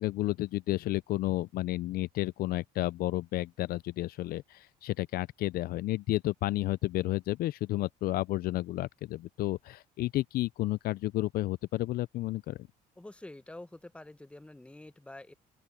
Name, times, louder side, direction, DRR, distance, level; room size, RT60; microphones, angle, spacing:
voice 1, 0.0-12.6, left 16 dB, 65° left, 0.4 m, -31 dB
voice 2, 13.0-15.3, left 2 dB, 5° left, 0.9 m, -47 dB
open air
cardioid pair, 110°, 17 cm